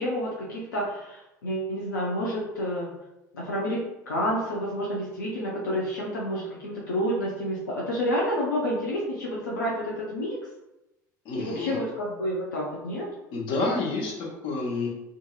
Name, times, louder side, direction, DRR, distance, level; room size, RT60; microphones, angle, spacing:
voice 1, 0.0-2.9 3.3-10.4 11.4-13.1, equal, 80° left, -4 dB, 0.5 m, -29 dB
voice 2, 11.2-11.8 13.3-14.9, left 3 dB, 50° left, -1 dB, 0.8 m, -29 dB
2.7 x 2.5 x 2.3 m, 0.92 s
figure-of-eight pair, 70°, 10 cm